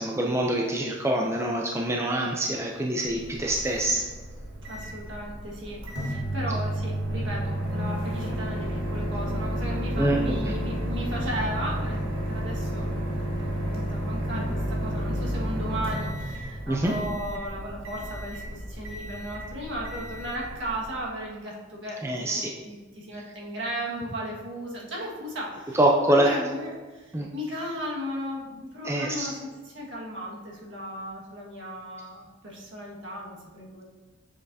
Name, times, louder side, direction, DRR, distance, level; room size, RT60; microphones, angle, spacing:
voice 1, 0.0-4.0 10.0-10.5 16.7-16.9 22.0-22.5 25.7-26.3 27.1-27.3 28.8-29.3, right 1 dB, 15° right, 0 dB, 0.4 m, -25 dB
Microwave oven, 3.0-21.0, right 1 dB, 85° right, 1.5 m, -31 dB
voice 2, 4.7-25.8 26.1-33.8, equal, 65° right, -3 dB, 1.6 m, -36 dB
7.5 x 6.2 x 2.7 m, 1.3 s
head